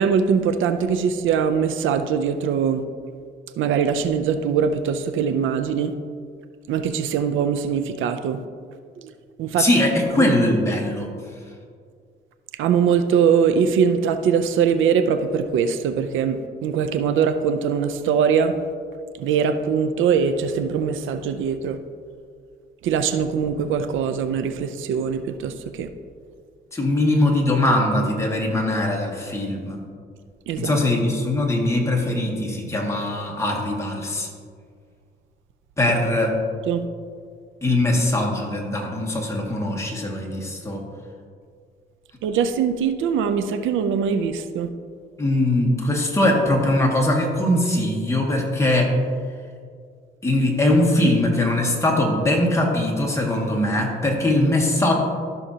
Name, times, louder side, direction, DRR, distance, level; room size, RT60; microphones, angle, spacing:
voice 1, 0.0-2.8 3.6-5.9 6.7-8.4 9.0-9.1 9.4-9.7 10.2-10.3 12.6-18.6 19.2-21.8 22.8-25.9 30.5-30.7 36.7-36.9 42.2-44.7, right 7 dB, 80° right, 10 dB, 0.5 m, -22 dB
voice 2, 9.6-11.1 26.7-29.8 30.6-34.3 35.8-36.4 37.6-40.8 45.2-48.9 50.2-54.9, left 1 dB, 15° left, -2 dB, 2.0 m, -21 dB
14.0 x 6.4 x 2.8 m, 2.1 s
cardioid pair, 90°, 20 cm